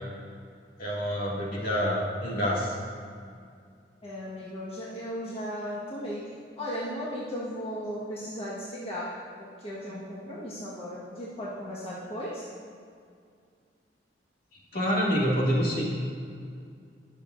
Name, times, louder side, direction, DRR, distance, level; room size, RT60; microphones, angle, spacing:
voice 1, 0.8-2.8 14.7-15.9, equal, 55° left, -5 dB, 2.4 m, -27 dB
voice 2, 4.0-9.1 9.4-12.5, equal, 35° left, -8 dB, 1.6 m, -36 dB
20.5 x 7.0 x 2.7 m, 2.3 s
head